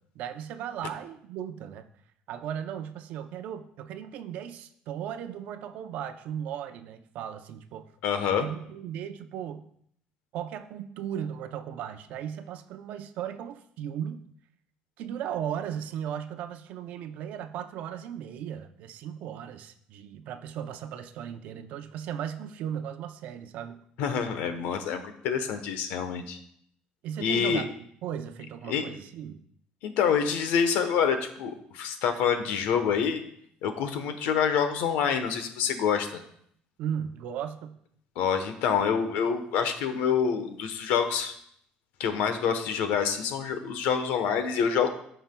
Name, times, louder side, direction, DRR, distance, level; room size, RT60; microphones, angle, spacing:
voice 1, 0.0-1.9 2.3-7.9 8.3-9.7 10.3-14.3 15.0-23.8 27.0-29.4 36.8-37.8, right 9 dB, 60° right, 9 dB, 0.6 m, -36 dB
voice 2, 8.0-8.4 24.0-26.4 27.2-27.6 28.7-28.8 29.8-33.2 33.6-36.2 38.2-41.3 42.0-44.9, left 7 dB, 85° left, 8 dB, 1.0 m, -27 dB
15.0 x 5.7 x 2.2 m, 0.68 s
cardioid pair, 160°, 3 cm